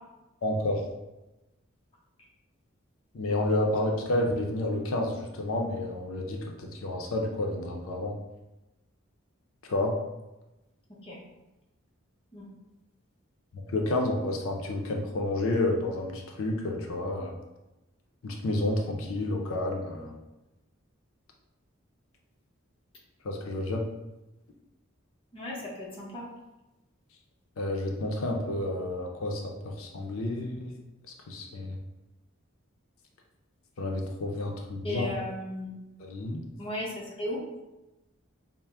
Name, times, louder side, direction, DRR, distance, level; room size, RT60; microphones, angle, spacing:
voice 1, 0.4-0.8 3.1-8.1 9.6-9.9 13.7-17.3 18.2-20.1 23.2-23.8 27.6-30.7 31.3-31.8 33.8-35.1 36.0-36.4, left 1 dB, 85° left, 1 dB, 0.5 m, -30 dB
voice 2, 25.3-26.3 34.8-35.7 36.6-37.4, left 1 dB, 25° left, -4 dB, 0.8 m, -36 dB
4.3 x 2.1 x 3.4 m, 1.0 s
head